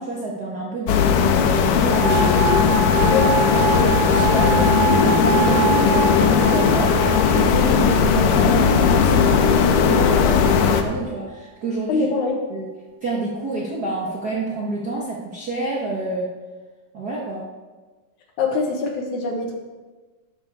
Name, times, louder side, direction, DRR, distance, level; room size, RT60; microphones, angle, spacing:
voice 1, 0.0-2.4 3.0-12.1 12.5-12.7 13.0-16.3 16.9-17.5, right 3 dB, 45° right, -5 dB, 1.2 m, -28 dB
sound 1, 0.9-10.8, left 7 dB, 85° left, 2.6 m, -17 dB
sound 2, 1.9-8.9 9.7-10.3, right 7 dB, 80° right, 2.1 m, -26 dB
voice 2, 11.9-12.4 18.4-19.5, left 4 dB, 65° left, 2 dB, 2.6 m, -23 dB
12.5 x 11.5 x 3.6 m, 1.3 s
omnidirectional pair, 3.9 m